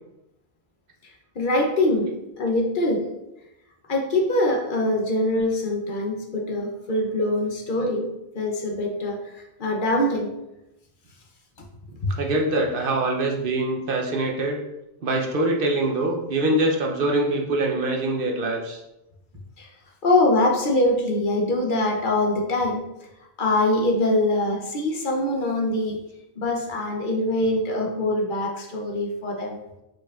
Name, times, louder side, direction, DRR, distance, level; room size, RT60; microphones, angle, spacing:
voice 1, 1.0-2.1 2.4-3.0 3.9-10.3 19.6-19.7 20.0-22.8 23.4-26.0 26.4-29.6, left 1 dB, 55° left, 0 dB, 0.8 m, -23 dB
voice 2, 12.2-14.6 15.0-18.8, right 2 dB, 60° right, 1 dB, 0.8 m, -24 dB
4.7 x 4.5 x 2.3 m, 0.91 s
omnidirectional pair, 1.1 m